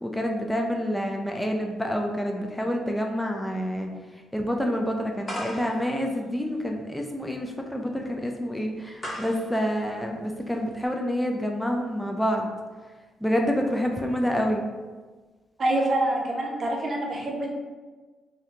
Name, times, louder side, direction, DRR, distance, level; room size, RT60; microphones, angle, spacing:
voice 1, 0.0-3.9 4.3-12.5 13.2-14.7, equal, 5° left, 1 dB, 0.3 m, -28 dB
sound 1, 5.2-10.9, equal, 30° left, 0.8 m, -40 dB
voice 2, 15.6-17.5, right 1 dB, 40° right, -1 dB, 0.7 m, -26 dB
2.7 x 2.1 x 3.8 m, 1.3 s
cardioid pair, 90°, 0 cm